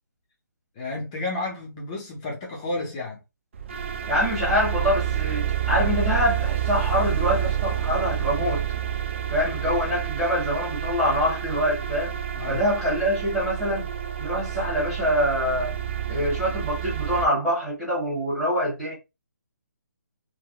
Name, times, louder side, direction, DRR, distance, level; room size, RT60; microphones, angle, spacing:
voice 1, 0.7-3.2 12.4-12.7, left 2 dB, 20° left, 0.7 m, -31 dB
sound 1, 3.5-17.3, right 11 dB, 40° right, 0.5 m, -28 dB
voice 2, 4.1-8.6 9.3-12.2 12.5-13.9 14.2-15.7 16.1-18.9, equal, 5° right, 1.3 m, -25 dB
3.5 x 2.2 x 2.2 m
hypercardioid pair, 165°, 10 cm